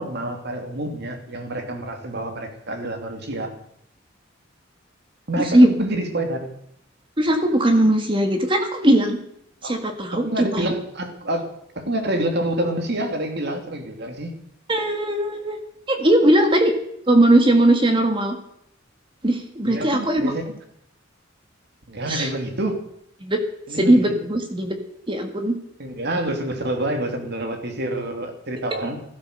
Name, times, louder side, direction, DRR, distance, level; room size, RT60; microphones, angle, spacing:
voice 1, 0.0-3.5 5.3-6.5 9.6-9.7 10.1-11.4 11.7-14.3 19.6-20.5 21.9-22.8 23.7-24.2 25.8-29.0, right 1 dB, 55° right, 5 dB, 2.9 m, -27 dB
voice 2, 5.4-5.7 7.2-9.2 9.6-10.7 14.7-15.6 15.9-16.7 17.1-18.3 19.2-20.3 22.1-22.3 23.2-23.4 23.7-24.8 25.1-25.6, right 1 dB, 25° right, 5 dB, 1.8 m, -19 dB
16.5 x 13.0 x 6.8 m, 0.73 s
head